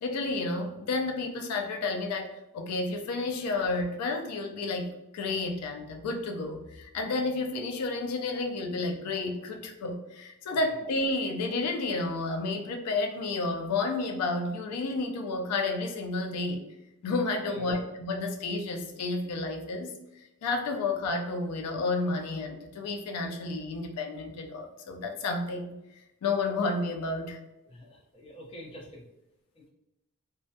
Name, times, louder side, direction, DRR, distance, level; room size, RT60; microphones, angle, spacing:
voice 1, 0.0-2.3 2.5-16.6 17.0-20.0 20.4-25.8 26.2-27.4, left 3 dB, 90° left, 3 dB, 0.4 m, -31 dB
voice 2, 17.4-17.7 27.7-29.0 29.6-29.7, left 1 dB, 25° left, -4 dB, 0.6 m, -46 dB
2.2 x 2.1 x 2.6 m, 0.92 s
head